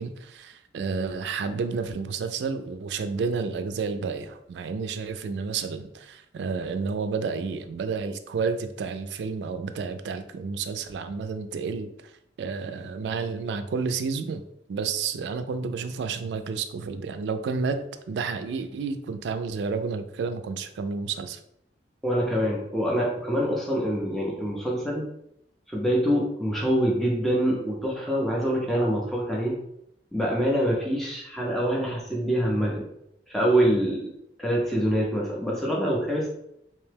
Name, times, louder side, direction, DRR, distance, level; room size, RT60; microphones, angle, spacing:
voice 1, 0.0-11.9 12.4-14.4 14.7-21.4, right 5 dB, 75° right, 10 dB, 0.3 m, -30 dB
voice 2, 22.0-25.0 25.7-29.6 30.1-32.8 33.3-34.0 34.4-36.3, equal, ahead, -4 dB, 0.5 m, -25 dB
2.8 x 2.2 x 3.3 m, 0.77 s
head